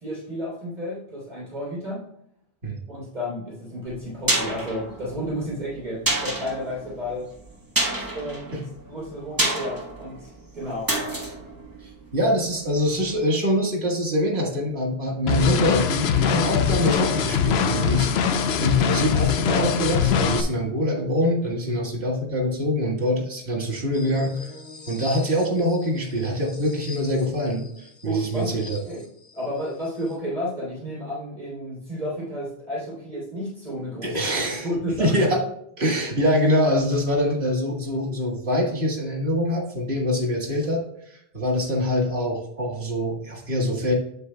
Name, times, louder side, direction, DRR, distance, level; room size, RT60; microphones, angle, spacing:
voice 1, 0.0-2.0 2.9-7.3 8.1-10.9 28.0-28.6 28.9-29.0 29.3-34.2 34.6-35.3, equal, 45° right, -7 dB, 3.2 m, -32 dB
sound 1, 3.9-12.7 13.0-13.1, right 1 dB, 20° right, 1.3 m, -29 dB
voice 2, 12.1-24.5 24.9-28.8 34.0-34.7 35.0-35.4 35.8-40.8 41.1-43.9, equal, 75° right, 0 dB, 2.0 m, -24 dB
sound 2, 15.3-20.4, left 7 dB, 80° left, 0.9 m, -22 dB
sound 3, 23.9-30.2, left 3 dB, 60° left, 1.6 m, -44 dB
8.1 x 7.8 x 2.2 m, 0.73 s
omnidirectional pair, 1.1 m